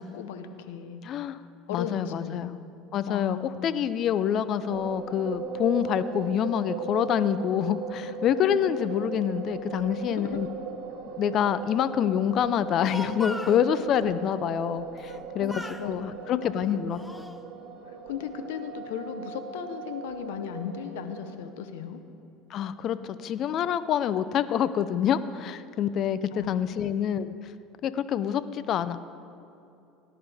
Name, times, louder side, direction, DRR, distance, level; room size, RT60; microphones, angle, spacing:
voice 1, 0.0-1.0 1.7-2.4 3.1-3.8 8.4-8.7 10.1-10.5 15.4-15.9 16.2-17.0 17.9-22.0 26.3-26.5 26.8-26.9, left 8 dB, 85° left, 8 dB, 0.8 m, -36 dB
voice 2, 1.0-1.4 1.7-2.6 2.9-10.5 11.2-17.0 22.5-27.3 27.8-29.2, left 9 dB, 50° left, 14 dB, 0.5 m, -27 dB
sound 1, 4.7-21.3, right 6 dB, 70° right, 2.3 m, -38 dB
Speech, 12.8-13.6 15.0-15.2 15.5-15.9 16.6-17.4, left 1 dB, 5° left, 0.7 m, -39 dB
18.0 x 11.0 x 3.5 m, 2.7 s
supercardioid pair, 105°, 0 cm